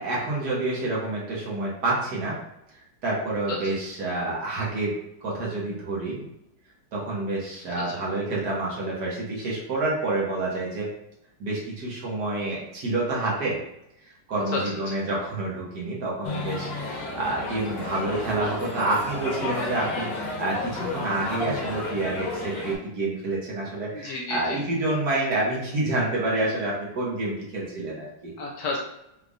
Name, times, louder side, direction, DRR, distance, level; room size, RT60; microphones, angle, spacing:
voice 1, 0.0-2.4 3.0-6.2 6.9-10.9 11.4-13.6 14.3-28.3, right 2 dB, 60° right, -5 dB, 1.8 m, -28 dB
sound 1, 16.2-22.8, left 2 dB, 85° left, 1.7 m, -32 dB
voice 2, 23.9-24.6 28.4-28.8, left 3 dB, 65° left, -1 dB, 1.0 m, -31 dB
5.1 x 3.4 x 2.5 m, 0.81 s
omnidirectional pair, 2.0 m